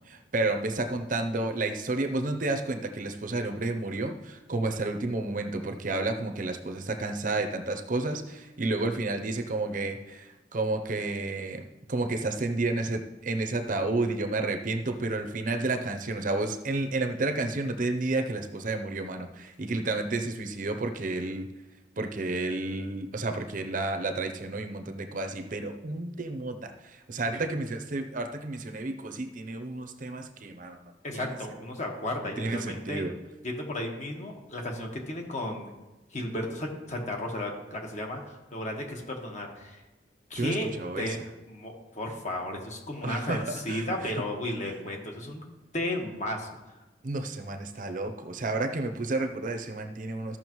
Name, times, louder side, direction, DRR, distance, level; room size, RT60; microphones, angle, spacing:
voice 1, 0.1-21.5 22.0-30.8 31.1-31.3 32.4-33.1 40.3-41.2 43.0-44.1 47.0-50.4, right 2 dB, 45° right, 6 dB, 0.7 m, -31 dB
voice 2, 31.0-33.0 33.4-35.7 36.1-39.8 40.3-40.7 41.0-41.2 41.5-45.4 45.7-46.5, left 1 dB, 40° left, 1 dB, 1.4 m, -34 dB
14.0 x 6.1 x 3.1 m, 1.1 s
head